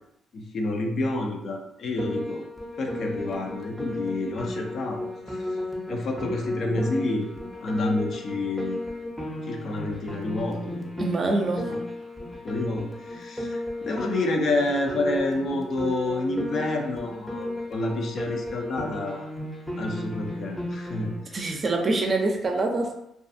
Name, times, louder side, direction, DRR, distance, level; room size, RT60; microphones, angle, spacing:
voice 1, 0.3-2.4 2.8-5.0 5.3-5.4 5.9-7.3 7.6-8.8 9.5-11.1 11.7-11.8 12.4-19.3 19.8-21.4, left 2 dB, 60° left, 2 dB, 0.5 m, -29 dB
Piano, 2.0-21.2, left 1 dB, 5° left, 0.6 m, -34 dB
voice 2, 11.0-11.6 21.3-22.9, right 2 dB, 40° right, 2 dB, 0.5 m, -25 dB
2.4 x 2.3 x 2.6 m, 0.79 s
cardioid pair, 90°, 0 cm